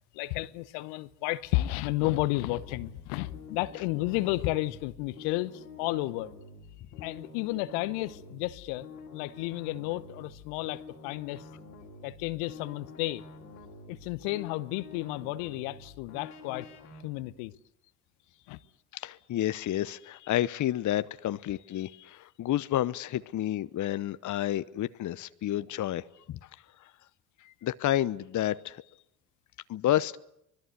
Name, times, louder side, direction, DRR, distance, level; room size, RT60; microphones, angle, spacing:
voice 1, 0.1-6.3 7.0-11.4 12.0-13.2 13.9-16.7 17.0-17.5 18.5-18.6, left 18 dB, 65° left, 1.0 m, -32 dB
sound 1, 2.6-17.0, left 4 dB, 85° left, 3.0 m, -48 dB
voice 2, 18.9-26.4 26.8-26.9 27.4-28.8 29.7-30.2, left 13 dB, 40° left, 0.9 m, -30 dB
25.0 x 20.0 x 8.0 m
hypercardioid pair, 55°, 45 cm